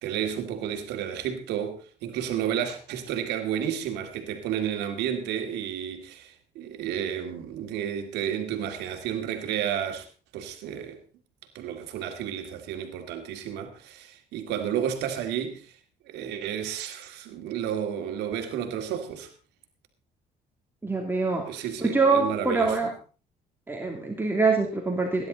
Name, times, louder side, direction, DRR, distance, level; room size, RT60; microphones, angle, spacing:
voice 1, 0.0-10.1 10.3-11.0 11.5-15.7 16.1-19.3 21.5-22.8, right 9 dB, 85° right, 5 dB, 2.3 m, -31 dB
voice 2, 20.8-21.5 21.8-22.9 23.7-25.3, right 4 dB, 10° right, 1 dB, 2.7 m, -24 dB
18.5 x 10.5 x 4.0 m, 0.36 s
cardioid pair, 110°, 17 cm